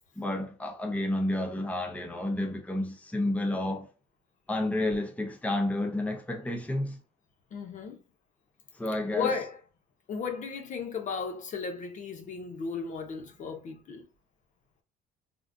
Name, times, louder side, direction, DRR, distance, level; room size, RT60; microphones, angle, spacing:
voice 1, 0.2-3.9 4.5-7.0 8.7-9.3, left 1 dB, 10° left, 0.7 m, -30 dB
voice 2, 7.5-8.0 9.1-9.6 10.1-14.1, left 5 dB, 45° left, 0.8 m, -35 dB
3.7 x 2.4 x 2.2 m
cardioid pair, 110°, 17 cm